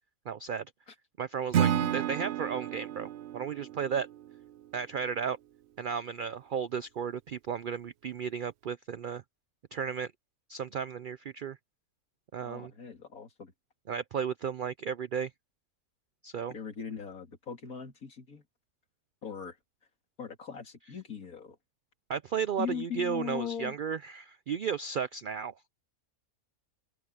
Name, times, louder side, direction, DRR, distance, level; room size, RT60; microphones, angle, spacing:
voice 1, 0.3-0.7 1.2-4.1 4.7-5.4 5.8-9.2 9.7-10.1 10.5-11.6 12.3-12.7 13.9-15.3 16.2-16.5 22.1-25.7, right 7 dB, 90° right, 0.4 m, -34 dB
Acoustic guitar / Strum, 1.5-4.7, right 10 dB, 65° right, 0.7 m, -31 dB
voice 2, 1.6-1.9 12.4-13.5 16.5-18.4 19.2-19.6 20.2-21.6 22.6-23.8, left 7 dB, 80° left, 3.0 m, -39 dB
open air
omnidirectional pair, 1.5 m